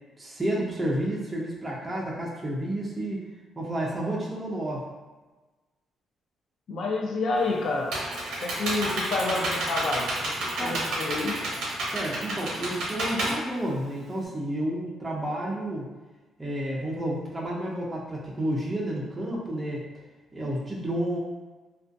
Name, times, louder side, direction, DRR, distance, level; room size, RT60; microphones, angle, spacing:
voice 1, 0.2-3.3 3.6-4.9 10.6-10.8 11.8-15.9 16.4-19.9 20.3-21.2, right 1 dB, 10° right, -5 dB, 0.4 m, -31 dB
voice 2, 6.7-7.9 8.4-10.3 10.6-11.5, left 3 dB, 50° left, 0 dB, 0.4 m, -29 dB
Computer keyboard, 7.4-14.2, right 1 dB, 80° right, 0.6 m, -30 dB
2.5 x 2.2 x 2.5 m, 1.2 s
cardioid pair, 160°, 0 cm